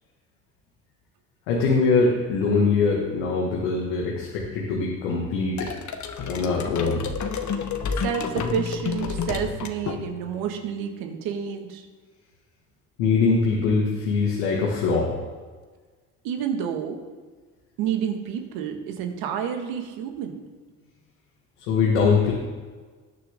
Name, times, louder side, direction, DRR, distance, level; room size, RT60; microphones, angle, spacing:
voice 1, 1.5-5.7 6.3-7.0 13.0-15.1 21.7-22.3, left 4 dB, 80° left, -2 dB, 2.2 m, -22 dB
sound 1, 5.6-10.4, left 5 dB, 50° left, 1.5 m, -30 dB
voice 2, 8.0-11.9 16.2-17.0 17.8-20.4, right 8 dB, 70° right, 4 dB, 2.0 m, -29 dB
19.5 x 6.5 x 3.8 m, 1.4 s
hypercardioid pair, 70°, 37 cm